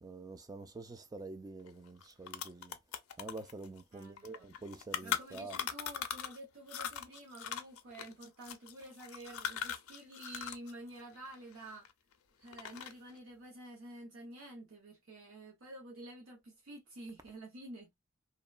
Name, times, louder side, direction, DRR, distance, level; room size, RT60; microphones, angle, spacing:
voice 1, 0.0-2.8 3.2-5.6, right 3 dB, 15° right, 0.3 m, -47 dB
sound 1, 1.7-1.8 2.0-6.4 6.7-10.7 11.0-12.1 12.5-13.1, left 8 dB, 80° left, 0.5 m, -40 dB
voice 2, 3.9-4.5 5.0-11.9 12.4-18.0, right 1 dB, 70° right, 0.9 m, -50 dB
2.8 x 2.1 x 2.3 m
head